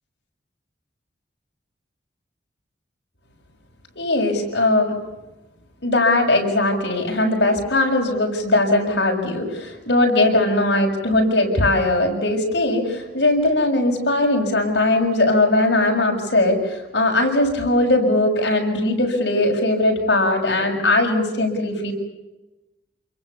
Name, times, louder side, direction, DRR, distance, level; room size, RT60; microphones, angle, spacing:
voice 1, 4.0-4.9 5.8-21.9, left 2 dB, 65° left, 1 dB, 6.9 m, -19 dB
28.0 x 22.5 x 7.0 m, 1.0 s
head